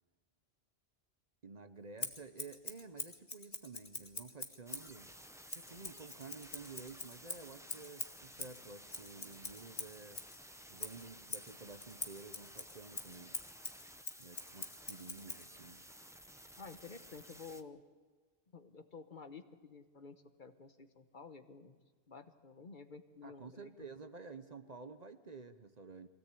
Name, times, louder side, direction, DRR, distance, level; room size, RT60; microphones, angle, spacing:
voice 1, 1.4-5.1 5.5-10.2 10.7-13.4 14.2-15.8 23.2-26.1, right 4 dB, 40° right, 9 dB, 1.0 m, -51 dB
Scissors, 2.0-4.9 5.5-10.4 10.8-15.5, left 3 dB, 30° left, 1.5 m, -45 dB
sound 1, 4.7-17.6, equal, 5° right, 0.7 m, -55 dB
voice 2, 16.6-17.8 18.5-21.8 22.1-23.7, left 4 dB, 50° left, 9 dB, 1.2 m, -52 dB
23.5 x 17.0 x 8.4 m, 1.5 s
omnidirectional pair, 1.1 m